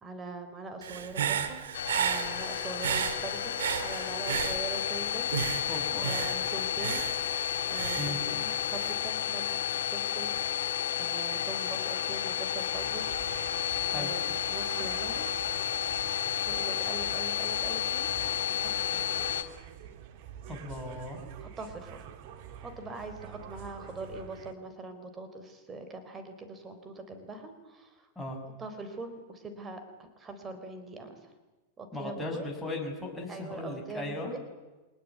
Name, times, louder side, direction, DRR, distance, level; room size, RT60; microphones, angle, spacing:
voice 1, 0.0-1.6 1.9-5.3 5.6-5.7 6.0-7.1 7.7-10.6 11.0-13.1 14.0-15.3 16.4-18.1 18.5-19.4 21.4-22.0 22.6-28.1 28.6-31.3 31.8-32.5 33.3-34.4, right 3 dB, 20° right, 8 dB, 3.9 m, -42 dB
Human voice / Breathing, 0.8-5.0 5.3-8.9, right 8 dB, 90° right, 2.1 m, -34 dB
Domestic sounds home sounds, 1.7-19.4, left 10 dB, 85° left, 2.8 m, -32 dB
voice 2, 5.7-6.4 8.0-8.2 13.9-14.1 20.5-21.2 28.1-28.4 31.9-34.3, left 2 dB, 5° left, -1 dB, 6.7 m, -37 dB
sound 1, 12.7-24.5, right 9 dB, 55° right, 2.4 m, -47 dB
25.5 x 19.5 x 9.5 m, 1.2 s
hypercardioid pair, 130°, 0 cm